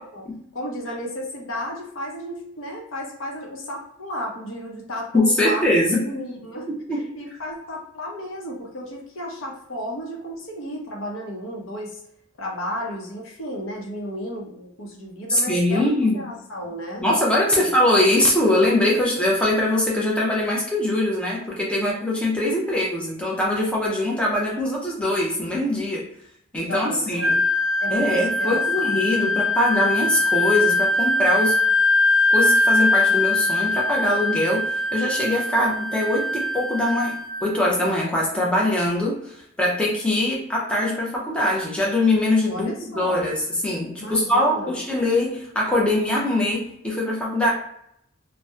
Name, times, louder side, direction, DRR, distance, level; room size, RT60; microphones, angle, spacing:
voice 1, 0.5-5.7 6.0-12.0 12.4-17.1 17.5-17.7 26.6-27.4 27.8-29.0 42.5-43.3 44.0-44.8, equal, 70° left, -1 dB, 0.7 m, -33 dB
voice 2, 5.1-6.0 6.9-7.0 15.3-16.2 17.0-26.0 26.5-27.4 27.9-31.6 32.3-37.2 37.4-47.5, left 1 dB, 5° left, -3 dB, 0.5 m, -22 dB
Wind instrument woodwind instrument, 27.2-37.6, left 2 dB, 80° right, 0.5 m, -22 dB
2.7 x 2.1 x 2.3 m, 0.72 s
head